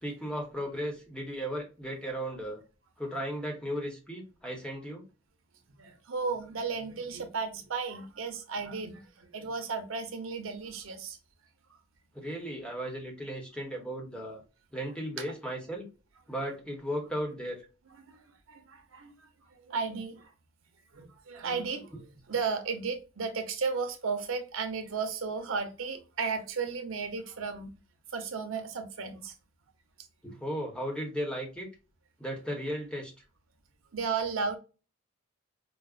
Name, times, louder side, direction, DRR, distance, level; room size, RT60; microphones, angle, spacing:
voice 1, 0.0-2.6 3.0-5.0 12.1-14.4 14.7-15.9 16.3-17.6 30.2-31.7 32.2-33.1, equal, 5° left, 0.9 m, -35 dB
voice 2, 5.8-11.2 18.1-18.2 18.5-20.3 20.9-27.7 28.1-29.3 33.9-34.6, right 5 dB, 85° right, 0.8 m, -34 dB
4.9 x 2.0 x 2.4 m
head